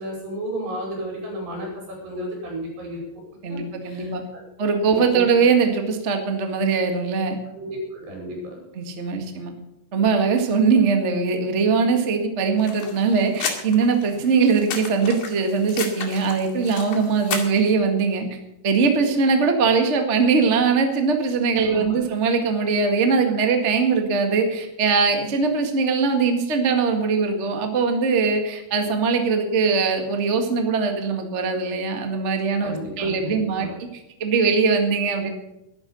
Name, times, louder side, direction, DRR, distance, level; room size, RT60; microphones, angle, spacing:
voice 1, 0.0-3.0 3.5-4.4 4.9-5.2 7.5-8.6 21.6-22.0 32.6-33.7, equal, 85° right, 0 dB, 7.3 m, -33 dB
voice 2, 3.4-4.2 4.6-7.4 8.7-9.5 9.9-18.3 18.6-33.7 34.2-35.3, right 5 dB, 40° right, 5 dB, 1.0 m, -21 dB
sound 1, 12.6-17.7, left 6 dB, 80° left, 4.3 m, -33 dB
12.0 x 11.5 x 7.0 m, 0.90 s
omnidirectional pair, 4.6 m